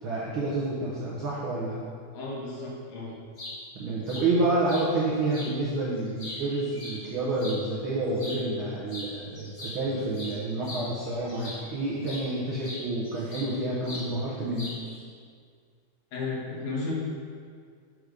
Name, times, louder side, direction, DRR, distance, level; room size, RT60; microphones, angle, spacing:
voice 1, 0.0-1.8 3.8-14.8, right 2 dB, 75° right, -6 dB, 1.2 m, -29 dB
voice 2, 2.1-3.1 16.1-16.9, left 3 dB, 75° left, -5 dB, 2.7 m, -34 dB
sound 1, 3.1-3.5 4.1-4.2 4.7-4.9 5.3-5.5 6.0-7.6 8.1-8.4 8.9-9.1 9.3-11.7 12.0-12.2 12.6-13.5 13.8-14.1 14.5-15.0, left 2 dB, 35° left, 0.9 m, -40 dB
6.1 x 5.2 x 4.8 m, 2.1 s
omnidirectional pair, 3.5 m